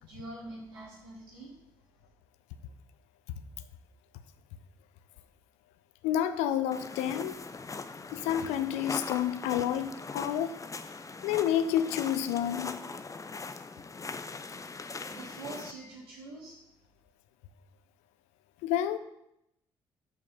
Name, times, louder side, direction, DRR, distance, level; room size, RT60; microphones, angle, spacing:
voice 1, 0.1-1.5 15.1-16.6, right 2 dB, 85° right, -7 dB, 3.4 m, -44 dB
voice 2, 6.0-7.4 8.1-10.6 11.2-12.8 18.6-19.0, left 10 dB, 70° left, 11 dB, 0.7 m, -29 dB
sound 1, 6.7-15.7, left 4 dB, 30° left, 0.8 m, -41 dB
7.3 x 5.9 x 7.5 m, 0.83 s
hypercardioid pair, 45°, 12 cm